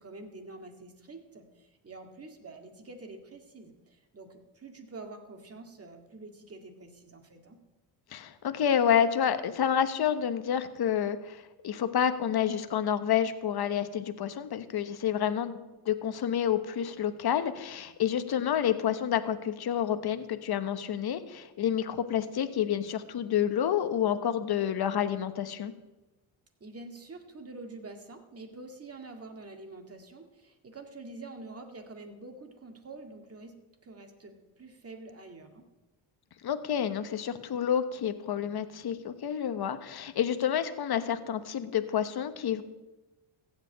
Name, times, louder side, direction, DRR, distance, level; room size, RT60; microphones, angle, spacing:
voice 1, 0.0-7.6 26.6-33.5 33.8-35.7, right 3 dB, 30° right, 4 dB, 2.0 m, -47 dB
voice 2, 8.1-25.7 36.4-42.6, left 9 dB, 55° left, 11 dB, 1.1 m, -29 dB
15.0 x 5.2 x 8.6 m, 1.1 s
cardioid pair, 90°, 46 cm